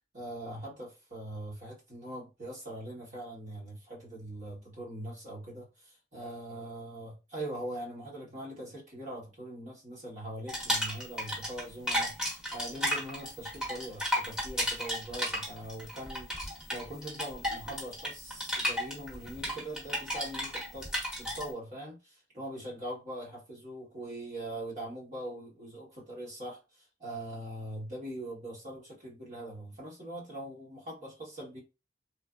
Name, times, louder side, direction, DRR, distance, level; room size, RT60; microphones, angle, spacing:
voice 1, 0.1-20.9 21.1-31.6, right 1 dB, 40° right, 1.2 m, -42 dB
sound 1, 10.5-11.6 11.9-21.4, equal, 5° right, 1.0 m, -33 dB
3.2 x 2.0 x 2.3 m
head